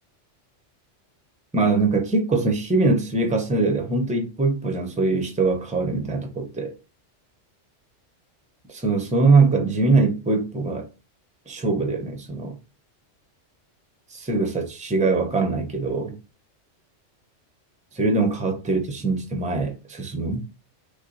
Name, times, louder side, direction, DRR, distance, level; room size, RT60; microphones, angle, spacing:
voice 1, 1.5-6.7 8.7-10.9 11.5-12.6 14.1-16.2 17.9-20.4, right 3 dB, 5° right, 0.7 m, -22 dB
5.9 x 2.2 x 4.0 m
omnidirectional pair, 1.3 m